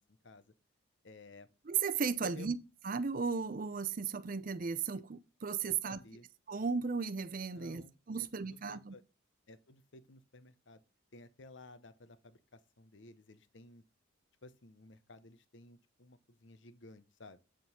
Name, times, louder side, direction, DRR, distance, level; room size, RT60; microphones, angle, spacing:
voice 1, 0.1-0.4 1.0-1.5 2.2-2.5 5.7-6.3 7.5-9.0 9.5-10.8 11.1-13.8 14.4-17.4, left 2 dB, 60° left, 0.8 m, -55 dB
voice 2, 1.7-2.6 2.8-6.0 6.5-8.9, right 5 dB, 40° right, 0.5 m, -35 dB
9.6 x 3.8 x 5.8 m
head